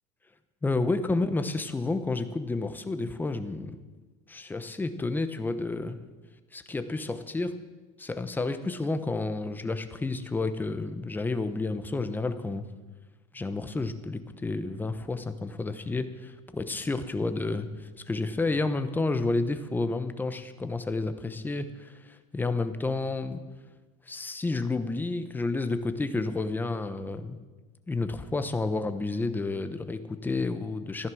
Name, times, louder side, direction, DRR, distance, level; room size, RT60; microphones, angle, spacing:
voice 1, 0.6-3.8 4.3-6.0 6.5-7.5 8.0-12.6 13.3-23.4 24.1-27.4 27.9-31.1, left 3 dB, 10° left, 10 dB, 0.9 m, -30 dB
14.5 x 11.0 x 6.3 m, 1.3 s
supercardioid pair, 135°, 18 cm